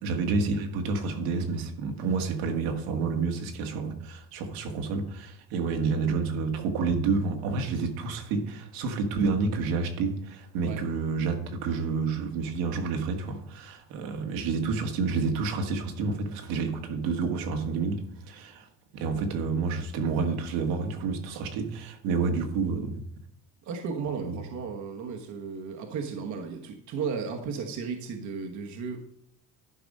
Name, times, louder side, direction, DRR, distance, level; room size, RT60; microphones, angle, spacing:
voice 1, 0.0-18.7 18.9-23.0 24.2-24.4, right 4 dB, 75° right, 1.6 m, -29 dB
voice 2, 23.6-29.0, right 5 dB, 50° right, 1.2 m, -34 dB
11.5 x 4.8 x 5.4 m
supercardioid pair, 115°, 36 cm